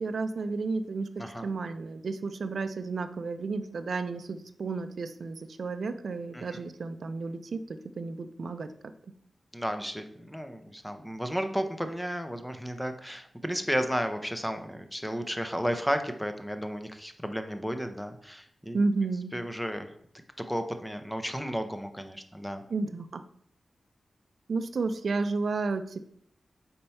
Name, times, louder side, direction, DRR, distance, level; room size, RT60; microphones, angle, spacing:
voice 1, 0.0-8.9 18.7-19.3 22.7-23.2 24.5-26.0, right 3 dB, 60° right, 10 dB, 0.4 m, -32 dB
voice 2, 9.5-18.8 19.3-19.9 20.5-22.6, equal, ahead, 7 dB, 0.6 m, -33 dB
4.4 x 4.3 x 5.5 m, 0.65 s
wide cardioid pair, 165°, 0 cm